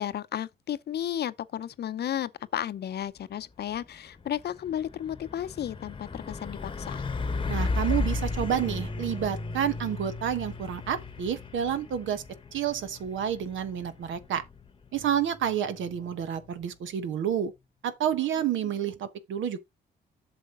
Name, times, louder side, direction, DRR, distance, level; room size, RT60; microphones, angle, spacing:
voice 1, 0.0-7.0, left 10 dB, 55° left, 0.6 m, -33 dB
Truck, 3.6-3.8 4.2-16.8, left 3 dB, 25° left, 1.0 m, -35 dB
voice 2, 7.5-12.2 12.5-14.4 14.9-17.5 17.8-19.6, right 9 dB, 75° right, 1.2 m, -29 dB
8.1 x 6.3 x 3.8 m
cardioid pair, 90°, 20 cm